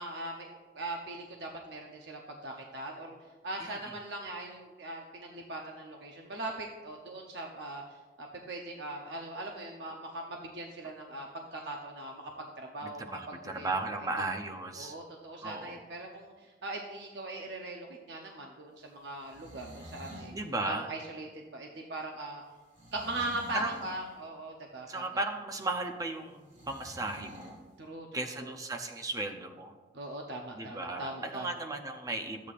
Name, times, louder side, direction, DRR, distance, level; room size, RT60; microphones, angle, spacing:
voice 1, 0.0-3.2 3.4-7.8 8.2-13.7 14.2-14.3 14.8-20.3 20.6-22.4 22.9-25.0 27.8-28.1 28.4-28.5 29.9-31.5, right 2 dB, 60° right, 1 dB, 0.7 m, -40 dB
voice 2, 3.6-3.9 12.8-14.9 15.4-15.8 20.3-20.9 23.5-23.8 24.9-27.6 28.1-29.7 30.5-32.5, right 2 dB, 20° right, 4 dB, 0.6 m, -36 dB
sound 1, 19.1-20.4 22.7-24.0 26.5-27.6, equal, 40° right, 1.9 m, -48 dB
12.5 x 8.2 x 2.5 m, 1.3 s
head